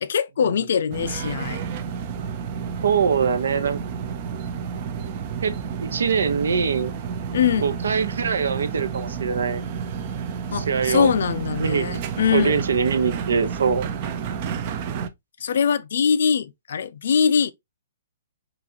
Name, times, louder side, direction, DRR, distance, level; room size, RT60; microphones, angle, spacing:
voice 1, 0.0-1.6 7.3-7.7 10.5-12.6 15.4-17.5, left 7 dB, 50° left, 0.4 m, -22 dB
sound 1, 0.9-15.1, right 7 dB, 25° right, 0.4 m, -31 dB
voice 2, 2.8-3.8 5.4-6.9 7.6-9.6 10.5-11.1 11.6-12.0 12.3-13.9, right 6 dB, 75° right, 0.8 m, -23 dB
6.1 x 2.5 x 2.8 m
hypercardioid pair, 180°, 0 cm